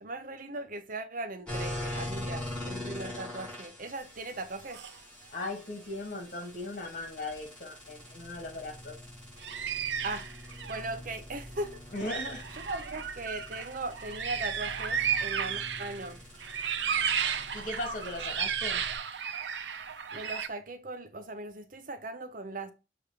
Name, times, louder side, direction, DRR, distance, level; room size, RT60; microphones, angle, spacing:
voice 1, 0.0-4.8 10.0-10.3 10.6-11.8 12.6-16.2 20.1-22.7, right 2 dB, 50° right, 0.8 m, -39 dB
sound 1, 1.5-19.0, left 1 dB, 5° left, 3.6 m, -43 dB
sound 2, 4.6-5.0 5.3-5.5 6.4-6.5 9.4-10.9 11.6-11.7 12.0-16.1 16.4-20.5, right 7 dB, 85° right, 0.7 m, -34 dB
voice 2, 5.3-9.0 11.9-12.4 17.5-18.8, left 2 dB, 50° left, 2.1 m, -38 dB
6.9 x 3.3 x 5.0 m
head